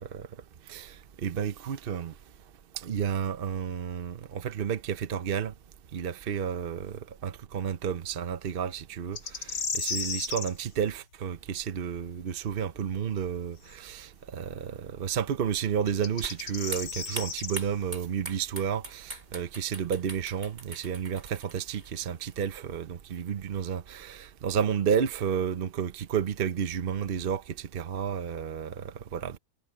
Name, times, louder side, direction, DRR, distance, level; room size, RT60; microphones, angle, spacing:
voice 1, 1.2-2.1 2.7-5.5 5.9-29.4, right 8 dB, 50° right, 0.6 m, -31 dB
sound 1, 9.2-10.5 13.7-13.8 15.9-17.6, left 5 dB, 85° left, 2.8 m, -34 dB
sound 2, 16.2-22.8, right 2 dB, 35° right, 4.8 m, -43 dB
omnidirectional pair, 1.9 m